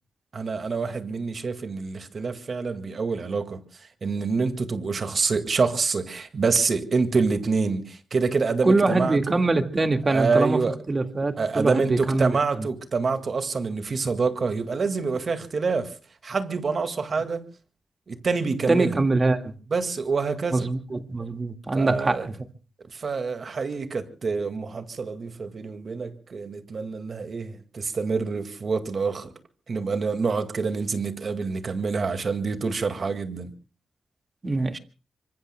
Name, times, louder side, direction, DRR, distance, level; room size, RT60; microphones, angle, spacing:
voice 1, 0.3-9.4 10.1-10.8 11.4-15.9 16.2-17.4 18.1-19.0 19.7-20.7 21.7-22.3 22.9-29.3 29.7-33.5, right 4 dB, 55° right, 2.0 m, -26 dB
voice 2, 8.6-10.6 10.9-12.4 18.7-19.5 20.5-22.3 34.4-34.8, right 3 dB, 35° right, 1.9 m, -23 dB
26.5 x 24.0 x 2.2 m
cardioid pair, 75°, 0 cm